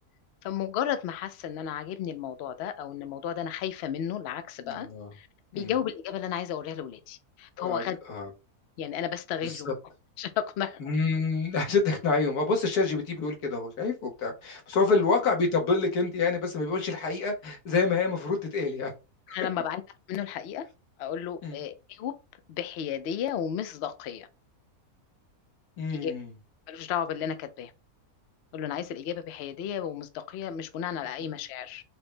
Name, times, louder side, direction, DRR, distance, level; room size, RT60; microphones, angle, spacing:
voice 1, 0.4-5.3 5.5-8.0 8.8-9.7 10.2-10.9 14.7-14.9 19.3-19.8 20.1-20.6 21.0-22.1 22.5-24.3 25.9-26.1 26.7-27.7 28.5-31.8, left 9 dB, 70° left, 0.6 m, -33 dB
voice 2, 4.6-5.1 5.5-5.7 7.6-7.8 8.1-8.3 9.4-9.7 10.8-18.9 19.3-19.4 21.4-21.6 25.8-26.3, left 4 dB, 90° left, 1.5 m, -27 dB
4.4 x 2.0 x 3.2 m
omnidirectional pair, 1.6 m